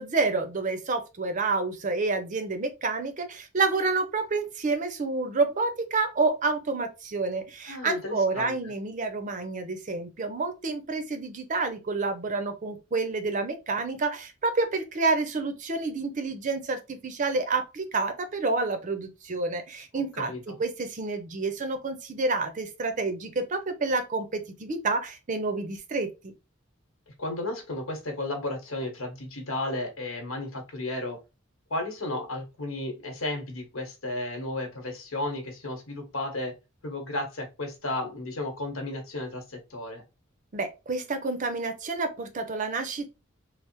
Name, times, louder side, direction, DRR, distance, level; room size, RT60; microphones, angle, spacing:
voice 1, 0.0-20.3 20.6-26.3 40.5-43.1, right 3 dB, 40° right, 0.5 m, -29 dB
voice 2, 7.7-8.6 19.9-20.6 27.2-31.2 31.7-36.5 36.8-40.0, left 2 dB, 85° left, 1.1 m, -33 dB
3.2 x 2.0 x 2.9 m
head